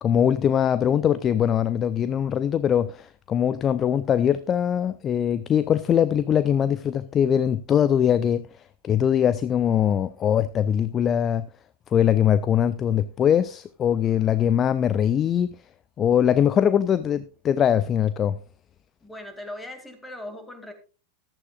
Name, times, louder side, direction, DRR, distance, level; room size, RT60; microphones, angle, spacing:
voice 1, 0.0-8.5 8.8-11.5 11.9-15.6 16.0-18.4, left 9 dB, 25° left, 0.5 m, -22 dB
voice 2, 19.0-20.7, left 1 dB, 5° left, 2.3 m, -39 dB
14.5 x 12.0 x 2.4 m
figure-of-eight pair, 90°, 0 cm